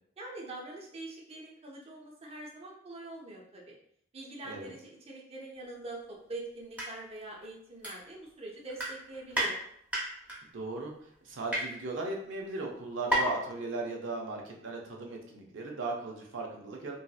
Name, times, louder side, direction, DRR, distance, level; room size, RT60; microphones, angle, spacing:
voice 1, 0.2-3.8 4.1-9.6, right 2 dB, 30° right, -2 dB, 0.6 m, -44 dB
sound 1, 6.6-6.9 7.2-7.3 7.8-8.4 8.7-9.5 9.9-10.4 11.0-11.6 12.4-12.5 12.7-12.8 13.1-13.4 13.7-13.8, equal, 10° right, 0.9 m, -31 dB
voice 2, 10.5-10.9 11.2-17.0, right 3 dB, 80° right, 0 dB, 0.6 m, -37 dB
3.0 x 2.7 x 2.3 m, 0.68 s
head